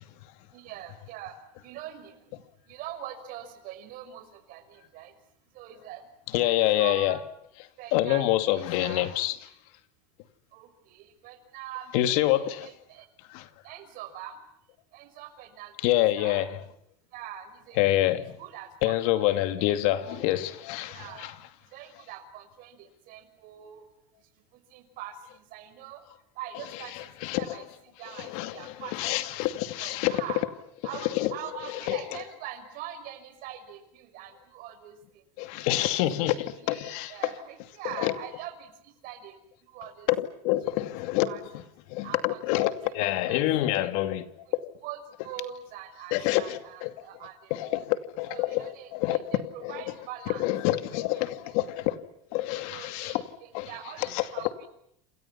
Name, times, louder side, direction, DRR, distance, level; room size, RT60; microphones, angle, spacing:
voice 1, 0.5-1.4 1.6-2.2 2.7-5.1 5.6-6.0 6.4-7.2 7.8-9.1 10.5-11.9 12.3-13.0 13.6-14.3 14.9-16.4 17.1-17.8 18.4-19.3 19.6-20.2 20.9-21.3 21.7-22.8 23.1-23.8 24.7-25.1 25.5-26.0 26.4-26.9 27.4-27.6 28.0-29.4 29.8-30.4 30.8-35.0 35.7-35.9 36.2-38.7 39.0-39.4 39.7-40.1 41.3-41.4 42.0-42.4 43.0-43.7 44.8-45.0 45.2-47.8 48.3-50.4 51.0-51.1 52.7-53.2 53.7-54.7, right 11 dB, 45° right, 5.7 m, -43 dB
voice 2, 6.3-7.2 7.9-9.4 11.9-12.7 13.3-13.5 15.8-16.6 17.8-18.4 18.8-21.3 26.9-27.6 28.1-30.2 31.0-31.3 31.9-32.2 35.4-37.3 37.8-38.2 40.1-41.3 41.9-44.7 46.1-46.9 47.5-49.8 50.4-52.0 52.3-53.2 53.5-53.7 54.0-54.5, left 15 dB, 60° left, 2.5 m, -27 dB
28.5 x 28.5 x 5.9 m
supercardioid pair, 155°, 20 cm